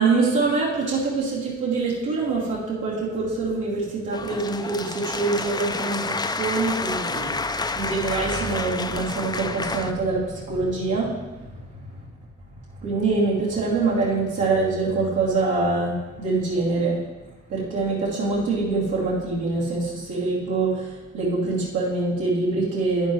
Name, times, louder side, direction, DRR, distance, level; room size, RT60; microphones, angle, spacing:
voice 1, 0.0-7.4 7.7-11.3 12.8-17.0 17.5-23.1, right 3 dB, 85° right, -7 dB, 2.8 m, -24 dB
sound 1, 4.1-9.9, left 3 dB, 15° left, 0.4 m, -29 dB
11.0 x 9.7 x 3.2 m, 1.2 s
cardioid pair, 90°, 30 cm